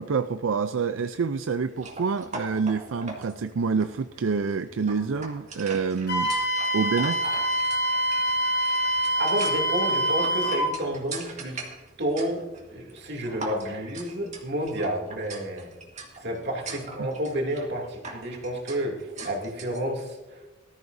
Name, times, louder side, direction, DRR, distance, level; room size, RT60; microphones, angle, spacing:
voice 1, 0.0-6.3 6.7-7.2, right 5 dB, 85° right, 10 dB, 0.5 m, -27 dB
sound 1, 1.7-19.8, right 3 dB, 40° right, 2.1 m, -42 dB
Wind instrument woodwind instrument, 6.1-10.7, right 1 dB, 60° left, 4.8 m, -25 dB
voice 2, 9.2-11.7 12.0-15.7 16.2-20.5, right 1 dB, 60° right, 1 dB, 2.7 m, -30 dB
18.5 x 13.5 x 2.7 m, 1.1 s
head